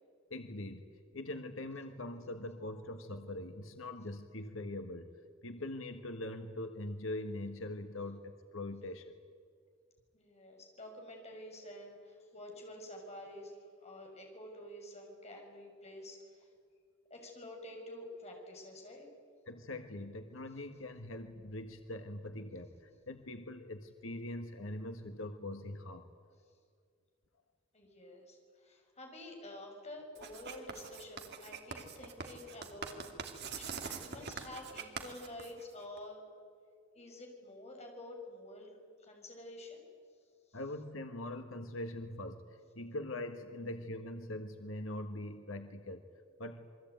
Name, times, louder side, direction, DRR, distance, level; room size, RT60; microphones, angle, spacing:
voice 1, 0.3-5.1 5.4-9.1 19.5-26.1 40.5-46.0 46.4-46.7, left 1 dB, 85° left, 7 dB, 1.6 m, -42 dB
voice 2, 10.1-16.5 17.1-19.1 27.7-36.2 36.9-39.8 40.5-40.6, left 1 dB, 35° left, 1 dB, 6.3 m, -49 dB
Writing, 30.1-36.0, right 5 dB, 55° right, 2.8 m, -44 dB
28.0 x 22.5 x 9.3 m, 2.1 s
head